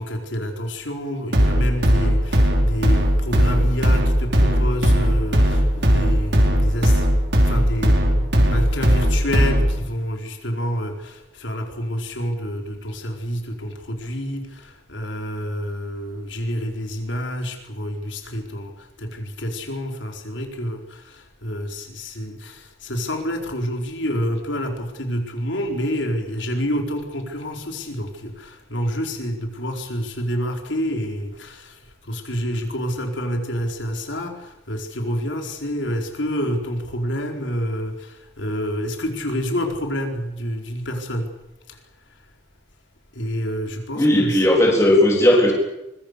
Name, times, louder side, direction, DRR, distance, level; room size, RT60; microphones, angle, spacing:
voice 1, 0.0-7.1 7.4-41.3 41.7-41.8 43.1-44.5, equal, 90° left, 3 dB, 4.7 m, -28 dB
sound 1, 1.3-9.8, equal, 70° right, 4.9 m, -18 dB
voice 2, 44.0-45.5, left 1 dB, 15° left, -1 dB, 3.8 m, -16 dB
25.0 x 22.5 x 6.8 m, 0.89 s
head